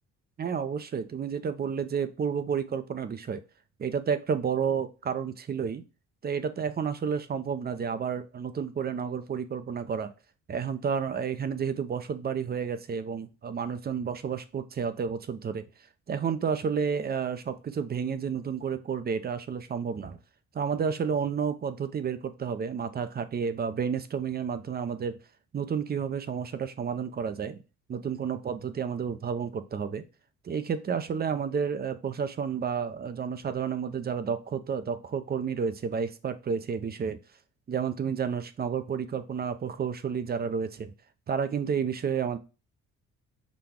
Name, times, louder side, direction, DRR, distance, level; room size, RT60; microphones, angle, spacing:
voice 1, 0.4-3.4 3.8-5.8 6.2-10.1 10.5-15.6 16.1-20.2 20.5-25.2 25.5-27.6 27.9-30.0 30.4-37.2 37.7-40.9 41.3-42.4, right 6 dB, 30° right, 11 dB, 0.5 m, -31 dB
6.0 x 2.2 x 3.5 m, 0.32 s
cardioid pair, 90°, 30 cm